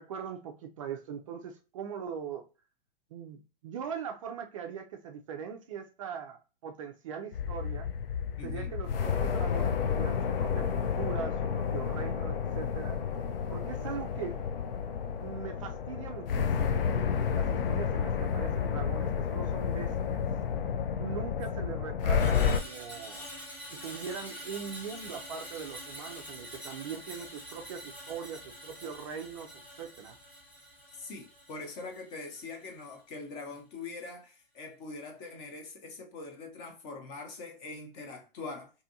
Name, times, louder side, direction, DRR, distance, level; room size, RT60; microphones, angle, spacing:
voice 1, 0.0-2.5 3.1-7.9 8.4-13.0 13.5-14.4 15.2-20.2 21.0-23.3 23.7-29.5 29.8-30.2, right 7 dB, 35° right, 0.4 m, -41 dB
sound 1, 7.3-22.6, left 7 dB, 70° left, 0.4 m, -30 dB
voice 2, 8.4-8.7 31.0-38.7, left 3 dB, 30° left, 0.7 m, -43 dB
Screech, 22.1-32.5 32.8-33.1, equal, 5° left, 1.0 m, -46 dB
2.7 x 2.4 x 2.6 m
hypercardioid pair, 140°, 29 cm